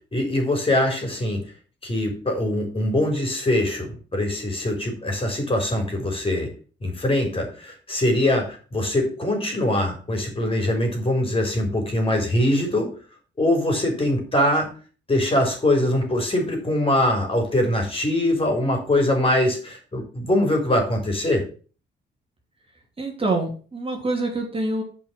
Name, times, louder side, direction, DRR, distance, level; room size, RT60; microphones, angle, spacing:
voice 1, 0.1-1.4 1.8-6.5 6.8-12.9 13.4-14.7 15.1-21.4, left 1 dB, 30° left, 2 dB, 4.1 m, -22 dB
voice 2, 23.0-24.8, right 2 dB, 30° right, 1 dB, 2.8 m, -26 dB
7.2 x 5.5 x 7.4 m, 0.39 s
cardioid pair, 90°, 20 cm